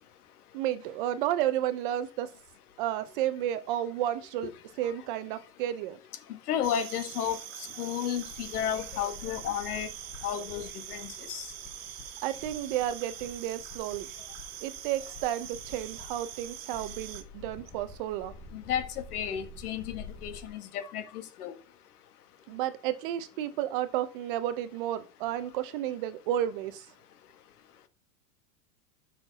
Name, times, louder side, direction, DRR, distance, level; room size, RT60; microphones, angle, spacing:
voice 1, 0.5-2.3 2.8-4.5 4.8-6.0 12.2-14.1 14.6-18.3 22.5-26.9, right 12 dB, 35° right, 0.6 m, -32 dB
voice 2, 6.3-9.9 10.2-11.5 18.5-21.5, left 9 dB, 80° left, 1.5 m, -33 dB
sound 1, 6.6-17.2, right 11 dB, 65° right, 1.4 m, -44 dB
sound 2, 8.2-20.5, left 4 dB, 10° left, 0.5 m, -49 dB
5.9 x 5.9 x 4.0 m
supercardioid pair, 165°, 44 cm